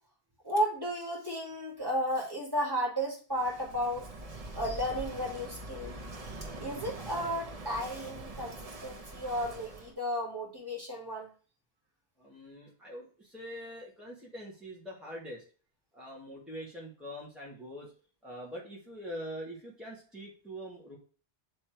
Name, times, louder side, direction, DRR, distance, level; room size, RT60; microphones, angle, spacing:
voice 1, 0.4-4.0 4.5-6.0 6.6-11.3, equal, 20° right, -2 dB, 2.0 m, -33 dB
Walk footsteps / Wind / Waves surf, 3.3-9.9, right 2 dB, 35° right, 0.9 m, -43 dB
voice 2, 12.2-15.4 15.9-17.9 18.2-21.0, equal, ahead, -4 dB, 1.5 m, -44 dB
8.6 x 3.3 x 4.5 m, 0.39 s
omnidirectional pair, 1.1 m